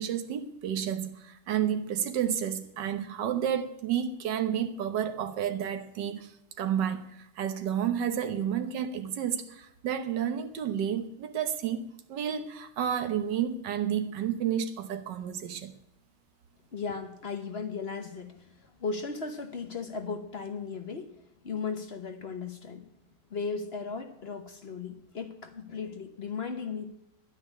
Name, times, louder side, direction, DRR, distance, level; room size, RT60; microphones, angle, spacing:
voice 1, 0.0-6.3 6.6-11.8 12.1-15.7, right 9 dB, 75° right, 1.7 m, -31 dB
voice 2, 16.7-21.1 21.4-22.9 23.3-26.9, left 5 dB, 40° left, 1.1 m, -36 dB
10.0 x 9.9 x 9.8 m
omnidirectional pair, 1.9 m